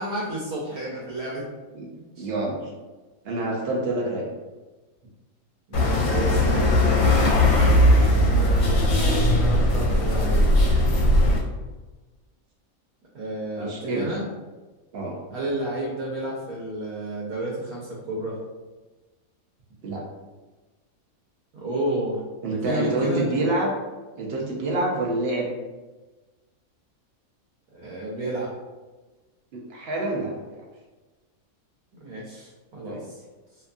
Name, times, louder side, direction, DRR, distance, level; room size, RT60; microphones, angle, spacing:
voice 1, 0.0-1.5 1.9-2.3 5.7-6.8 8.1-10.5 13.1-14.3 15.3-18.4 21.5-22.2 22.5-23.3 27.7-28.5 32.0-33.2, right 1 dB, 85° right, -4 dB, 1.1 m, -31 dB
voice 2, 2.2-2.7 3.2-4.2 13.6-14.2 14.9-15.2 19.8-20.0 22.4-23.7 24.2-25.5 29.5-30.6 32.9-33.0, right 2 dB, 70° right, -2 dB, 0.6 m, -27 dB
sound 1, 5.7-11.4, left 1 dB, 75° left, 1.0 m, -19 dB
2.7 x 2.2 x 2.5 m, 1.2 s
omnidirectional pair, 1.5 m